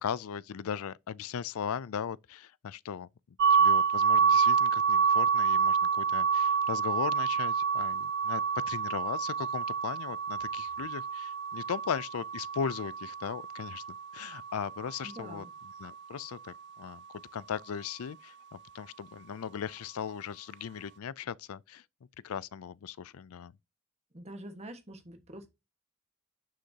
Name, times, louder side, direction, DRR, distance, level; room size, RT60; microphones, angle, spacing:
voice 1, 0.0-3.1 3.6-13.8 14.1-15.5 15.8-17.0 17.3-21.8 22.2-23.5, left 7 dB, 75° left, 0.4 m, -38 dB
sound 1, 3.4-15.1, right 6 dB, 50° right, 0.4 m, -28 dB
voice 2, 15.0-15.5 24.1-25.5, right 1 dB, 30° right, 1.5 m, -45 dB
11.5 x 6.5 x 2.8 m
head